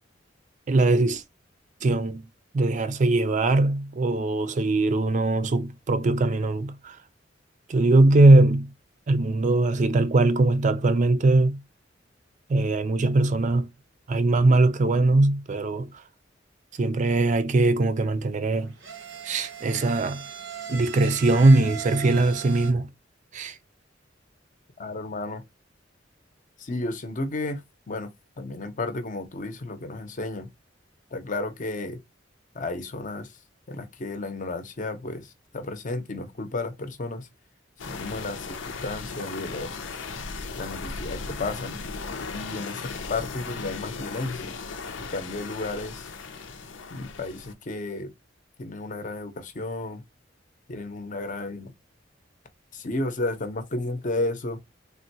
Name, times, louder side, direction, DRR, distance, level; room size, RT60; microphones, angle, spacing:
voice 1, 0.7-1.2 1.8-2.3 2.5-7.0 7.7-8.7 9.1-11.6 12.5-13.7 14.1-15.9 16.8-18.7 19.2-20.2 20.7-22.9 23.3-23.6, right 2 dB, 40° right, 0.4 m, -21 dB
sound 1, 18.5-22.7, right 7 dB, 75° right, 0.9 m, -39 dB
voice 2, 24.8-25.4 26.6-30.5 31.1-32.0 32.5-33.4 33.7-37.3 37.9-39.8 40.5-41.8 42.3-44.6 45.0-46.1 46.9-48.1 48.6-50.0 50.7-51.7 52.7-54.6, left 2 dB, 45° left, 0.7 m, -33 dB
sound 2, 37.8-47.5, left 4 dB, 90° left, 0.6 m, -37 dB
3.6 x 2.2 x 2.7 m
head